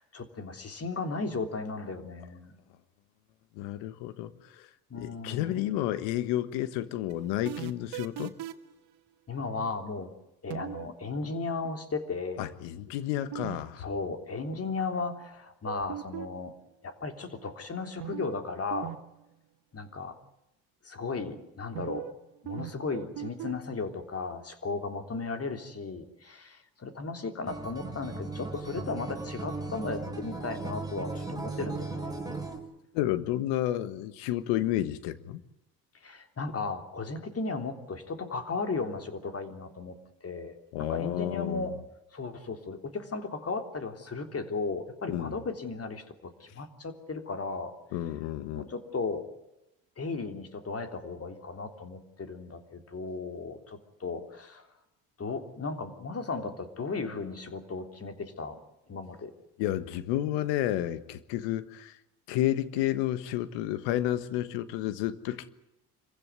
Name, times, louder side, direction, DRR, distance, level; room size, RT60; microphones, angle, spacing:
voice 1, 0.0-2.6 4.9-5.6 9.3-10.1 10.4-12.5 13.8-16.5 16.8-19.0 19.7-20.1 20.8-22.1 22.4-32.2 36.0-40.0 40.2-41.8 42.1-47.7 48.5-49.2 50.0-54.6 55.2-58.6 58.9-59.3, left 4 dB, 35° left, 7 dB, 3.5 m, -35 dB
voice 2, 3.5-4.7 5.0-8.3 12.4-13.9 32.9-35.4 40.7-41.7 45.1-45.4 47.9-48.7 59.6-62.0 62.3-65.5, left 13 dB, 80° left, 14 dB, 1.5 m, -31 dB
sound 1, 7.1-8.7 10.5-10.9 13.3-13.6 13.8-13.9 15.7-16.5 18.0-18.4 18.7-19.0 19.2-19.3 21.7-22.2 22.5-23.5, right 13 dB, 65° right, 2.0 m, -38 dB
Acoustic guitar, 27.5-32.6, right 3 dB, 10° right, 4.4 m, -37 dB
25.5 x 15.5 x 9.6 m, 0.91 s
supercardioid pair, 75°, 42 cm